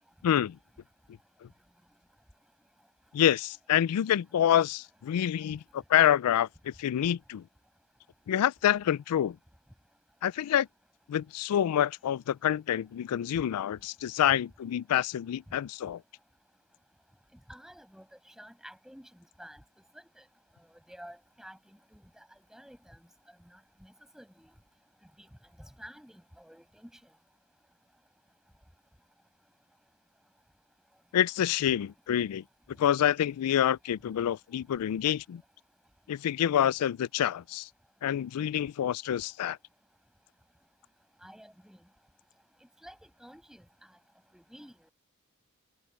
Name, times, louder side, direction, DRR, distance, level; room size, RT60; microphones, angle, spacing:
voice 1, 0.2-0.6 3.1-7.4 8.3-9.4 10.2-10.7 11.1-16.0 31.1-32.4 32.8-35.4 36.1-37.7 38.0-39.6, left 10 dB, 85° left, 0.3 m, -27 dB
voice 2, 17.5-19.1 19.4-19.6 19.9-20.2 20.7-22.1 22.5-23.0 23.8-24.5 25.2-25.3 25.6-26.9 41.2-41.8 42.8-43.6 44.3-44.7, equal, ahead, 7.6 m, -51 dB
head